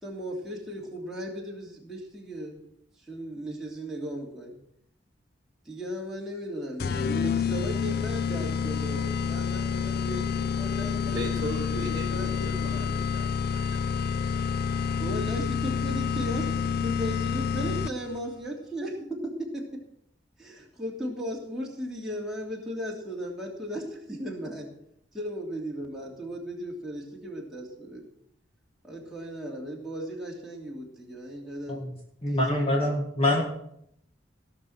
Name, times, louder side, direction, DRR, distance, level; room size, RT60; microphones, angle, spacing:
voice 1, 0.0-2.6 3.0-4.6 5.6-12.9 15.0-19.9 20.4-24.7 25.1-28.0 28.8-31.8 32.3-32.9, equal, ahead, -4 dB, 3.0 m, -36 dB
sound 1, 6.8-18.2, left 6 dB, 50° left, 0.4 m, -28 dB
voice 2, 10.9-14.4, equal, 20° right, 1 dB, 4.0 m, -39 dB
voice 3, 32.2-33.4, left 1 dB, 30° left, 0 dB, 1.8 m, -25 dB
17.0 x 6.2 x 7.3 m, 0.74 s
head